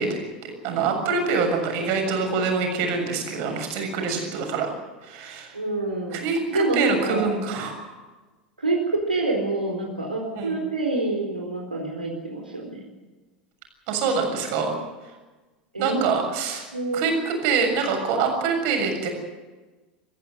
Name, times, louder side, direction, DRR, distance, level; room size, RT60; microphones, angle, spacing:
voice 1, 0.0-4.7 5.0-5.6 6.1-7.9 10.4-10.6 13.9-14.8 15.8-16.7 16.9-19.1, right 5 dB, 50° right, 4 dB, 7.0 m, -25 dB
voice 2, 5.5-6.2 6.5-7.2 8.6-12.8 15.7-16.0 16.7-17.0, right 2 dB, 85° right, -1 dB, 4.2 m, -26 dB
26.5 x 15.0 x 7.9 m, 1.2 s
figure-of-eight pair, 80°, 5 cm